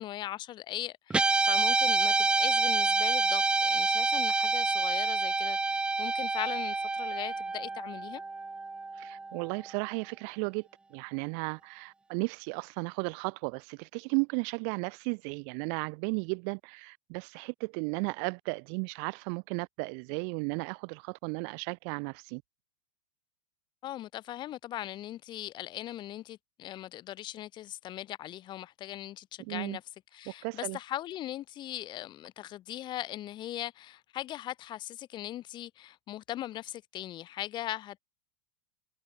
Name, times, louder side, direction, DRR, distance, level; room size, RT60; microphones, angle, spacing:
voice 1, 0.0-8.2 23.8-29.8 30.1-38.0, left 13 dB, 40° left, 6.3 m, -39 dB
Guitar, 1.1-9.6, right 3 dB, 10° right, 0.4 m, -28 dB
voice 2, 8.9-22.4 29.4-29.8 30.3-30.8, right 40 dB or more, 55° right, 2.8 m, -35 dB
hypercardioid pair, 100°, 12 cm